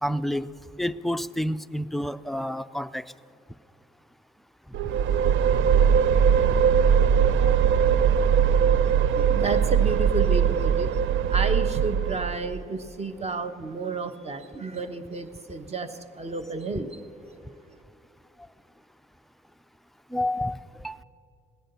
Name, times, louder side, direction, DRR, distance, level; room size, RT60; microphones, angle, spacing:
voice 1, 0.0-0.5 0.8-3.0 7.4-7.6 20.1-21.0, left 1 dB, ahead, 11 dB, 0.4 m, -29 dB
sound 1, 4.7-12.6, right 7 dB, 80° right, 0.4 m, -21 dB
voice 2, 8.7-11.0 11.3-17.0, right 3 dB, 30° right, 9 dB, 1.1 m, -32 dB
18.0 x 10.0 x 6.8 m, 2.6 s
cardioid pair, 90°, 20 cm